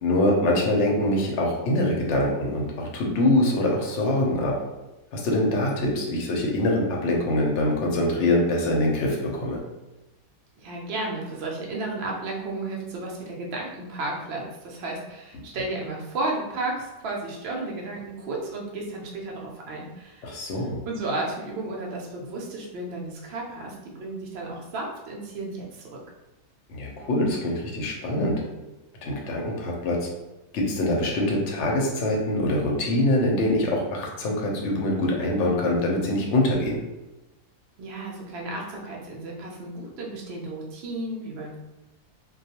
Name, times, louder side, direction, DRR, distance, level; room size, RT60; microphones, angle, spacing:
voice 1, 0.0-4.5 5.1-9.6 20.2-20.8 26.7-28.4 29.0-30.0 30.5-36.8, left 1 dB, 60° left, -1 dB, 0.8 m, -24 dB
voice 2, 10.6-20.5 20.8-26.0 37.8-41.6, right 2 dB, 65° right, -2 dB, 0.6 m, -33 dB
2.3 x 2.2 x 2.8 m, 1.0 s
omnidirectional pair, 1.6 m